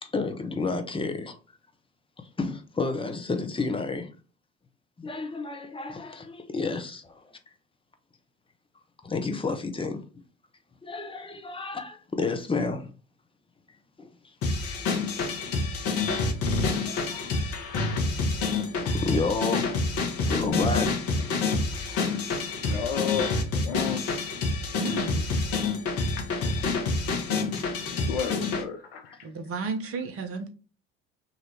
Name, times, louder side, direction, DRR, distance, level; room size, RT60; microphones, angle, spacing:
voice 1, 0.0-1.4 2.2-4.1 5.0-7.4 9.0-10.0 10.8-12.8 14.0-14.3 16.8-17.7 18.0-19.7 20.2-20.9 26.3-26.8 27.1-27.3, left 3 dB, 15° left, 1.1 m, -31 dB
sound 1, 14.4-28.6, left 3 dB, 50° left, 1.4 m, -27 dB
voice 2, 22.6-24.0 25.3-25.4 28.1-29.3, left 7 dB, 70° left, 0.8 m, -33 dB
voice 3, 24.8-25.3 29.2-30.5, right 4 dB, 45° right, 1.3 m, -33 dB
5.3 x 3.0 x 3.4 m
figure-of-eight pair, 60°, 31 cm